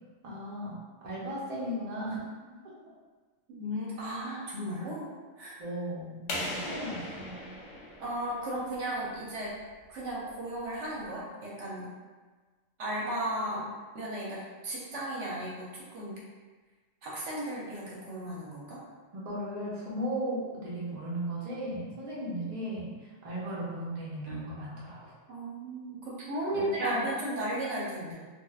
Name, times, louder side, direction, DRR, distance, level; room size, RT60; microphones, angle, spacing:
voice 1, 0.2-2.2 4.2-4.3 5.6-7.4 19.1-25.1 26.5-27.0, right 1 dB, 40° right, -7 dB, 0.6 m, -36 dB
voice 2, 3.5-5.1 5.4-5.6 8.0-9.5 9.9-11.9 12.8-13.6 13.9-16.2 17.0-18.8 24.3-24.4 25.3-28.1, right 1 dB, 65° right, -5 dB, 1.0 m, -35 dB
sound 1, 6.3-8.9, left 1 dB, 70° left, 1.0 m, -38 dB
3.2 x 2.4 x 2.3 m, 1.4 s
omnidirectional pair, 1.4 m